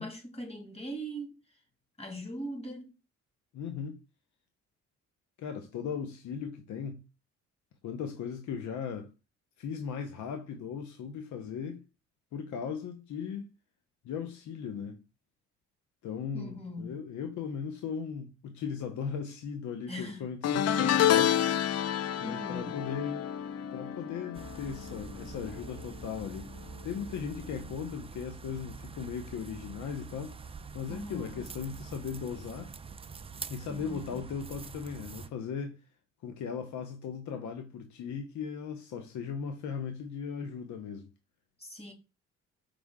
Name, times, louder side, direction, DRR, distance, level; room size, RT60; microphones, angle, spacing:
voice 1, 0.0-1.4 2.0-2.9 16.3-17.0 19.9-20.3 22.2-22.8 30.9-31.5 33.7-34.2 41.6-41.9, equal, 20° left, 2.2 m, -40 dB
voice 2, 3.5-4.0 5.4-7.0 7.8-9.1 9.6-11.8 12.3-13.5 14.0-15.0 16.0-21.5 22.2-23.3 23.7-32.7 33.5-35.8 36.2-41.1, left 6 dB, 75° left, 1.0 m, -38 dB
sound 1, 20.4-25.8 26.1-26.5 27.7-27.8, left 10 dB, 55° left, 0.5 m, -29 dB
sound 2, 24.3-35.3, right 5 dB, 20° right, 0.4 m, -45 dB
5.1 x 5.0 x 3.6 m
cardioid pair, 95°, 30 cm